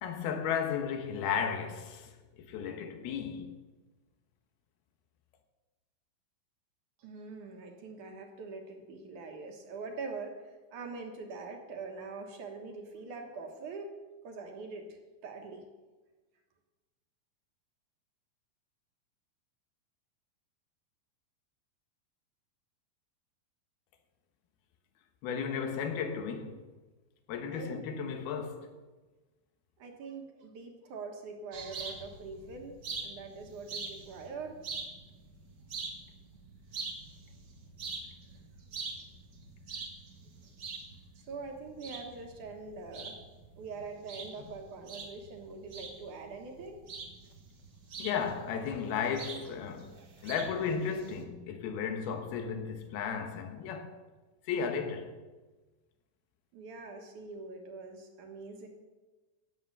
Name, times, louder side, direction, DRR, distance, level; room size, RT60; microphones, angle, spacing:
voice 1, 0.0-2.1 2.5-3.6 25.2-26.6 27.3-28.7 48.0-49.9 50.2-54.0 54.5-55.1, left 6 dB, 80° left, 3.2 m, -34 dB
voice 2, 7.0-14.0 14.2-15.6 27.5-27.8 29.8-32.8 33.0-34.6 41.2-43.2 43.6-46.8 56.5-58.7, right 4 dB, 60° right, 2.6 m, -43 dB
sound 1, 31.5-51.2, right 4 dB, 80° right, 0.9 m, -45 dB
16.5 x 7.9 x 6.7 m
omnidirectional pair, 4.4 m